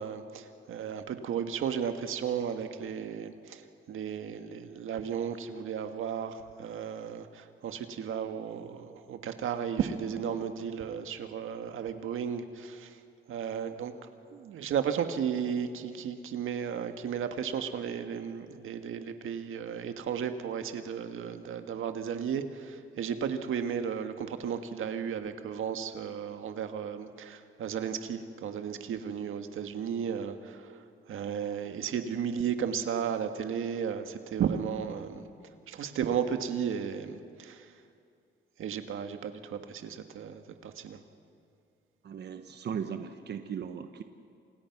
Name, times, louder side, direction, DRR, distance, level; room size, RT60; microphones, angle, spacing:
voice 1, 0.0-3.6 3.9-13.0 13.3-13.9 14.3-30.8 31.1-35.3 35.7-37.7 38.6-41.0, right 7 dB, 85° right, 7 dB, 1.7 m, -34 dB
voice 2, 42.0-44.0, right 7 dB, 55° right, 7 dB, 1.1 m, -37 dB
29.0 x 27.0 x 6.0 m, 2.4 s
wide cardioid pair, 145°, 20 cm